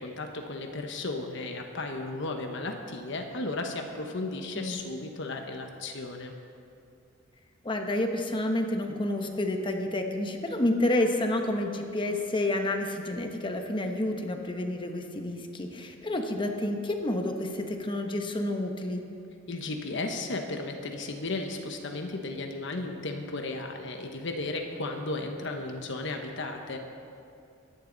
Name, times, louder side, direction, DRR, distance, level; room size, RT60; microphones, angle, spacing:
voice 1, 0.0-6.3 19.5-26.8, left 2 dB, 65° left, 4 dB, 1.1 m, -34 dB
voice 2, 7.6-19.0, left 1 dB, 25° left, 4 dB, 1.1 m, -29 dB
23.5 x 10.5 x 4.0 m, 2.6 s
head